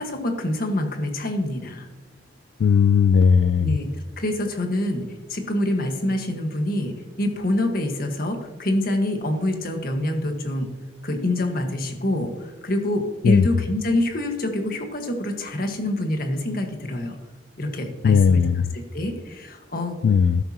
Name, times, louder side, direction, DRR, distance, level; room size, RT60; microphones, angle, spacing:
voice 1, 0.0-1.9 3.6-3.9 4.2-10.7 11.0-17.1 17.6-18.5 18.7-20.0, left 1 dB, 55° left, 4 dB, 1.6 m, -26 dB
voice 2, 2.6-3.7 13.2-13.4 18.0-18.5 20.0-20.4, left 6 dB, 80° left, 13 dB, 0.3 m, -17 dB
12.5 x 10.5 x 3.0 m, 1.2 s
head